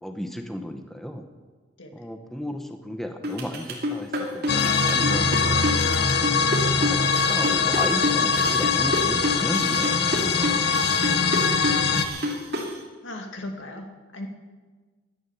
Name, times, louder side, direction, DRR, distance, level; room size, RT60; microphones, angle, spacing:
voice 1, 0.0-1.3 1.9-6.1 6.7-10.6, equal, ahead, 5 dB, 0.9 m, -34 dB
sound 1, 3.2-12.7, left 1 dB, 55° right, 2.7 m, -28 dB
sound 2, 4.5-12.1, left 5 dB, 55° left, 0.9 m, -22 dB
voice 2, 12.0-12.5 13.0-13.9 14.1-14.3, left 1 dB, 90° left, 3 dB, 2.2 m, -38 dB
16.0 x 10.0 x 7.2 m, 1.4 s
head